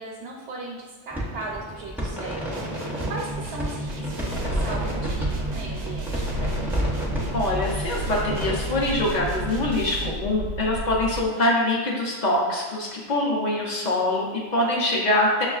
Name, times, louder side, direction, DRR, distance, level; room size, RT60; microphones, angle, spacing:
voice 1, 0.0-6.6, right 3 dB, 80° right, -2 dB, 0.9 m, -38 dB
sound 1, 1.1-8.6, equal, ahead, 0.4 m, -31 dB
sound 2, 2.5-10.3, right 2 dB, 55° right, 0.5 m, -35 dB
Purr, 4.2-11.2, equal, 85° left, 1.0 m, -32 dB
voice 2, 7.3-15.4, left 1 dB, 50° left, -3 dB, 0.6 m, -24 dB
6.1 x 2.4 x 2.3 m, 1.4 s
omnidirectional pair, 1.2 m